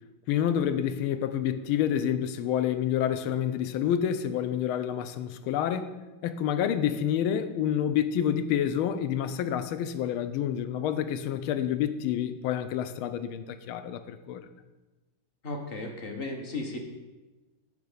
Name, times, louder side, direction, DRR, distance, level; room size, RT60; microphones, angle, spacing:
voice 1, 0.3-14.4, left 9 dB, 85° left, 11 dB, 1.4 m, -28 dB
voice 2, 15.4-16.8, left 2 dB, 40° left, 3 dB, 0.9 m, -35 dB
6.9 x 5.1 x 6.6 m, 1.1 s
omnidirectional pair, 2.3 m